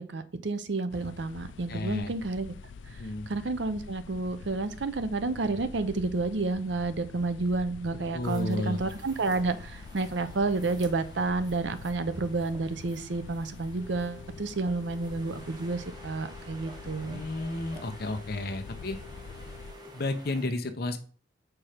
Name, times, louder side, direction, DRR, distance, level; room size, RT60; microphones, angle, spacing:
voice 1, 0.0-2.5 3.3-17.2, right 3 dB, 70° right, 11 dB, 0.7 m, -30 dB
sound 1, 0.9-19.7, left 5 dB, 75° left, 0.4 m, -46 dB
voice 2, 1.7-2.1 3.0-3.3 8.1-8.8 17.1-19.0 19.9-21.0, left 2 dB, 55° left, 8 dB, 0.8 m, -32 dB
sound 2, 8.2-20.5, right 1 dB, 20° right, 1.1 m, -50 dB
sound 3, 13.8-19.9, left 1 dB, 15° left, 2.1 m, -51 dB
5.6 x 4.5 x 5.1 m, 0.41 s
head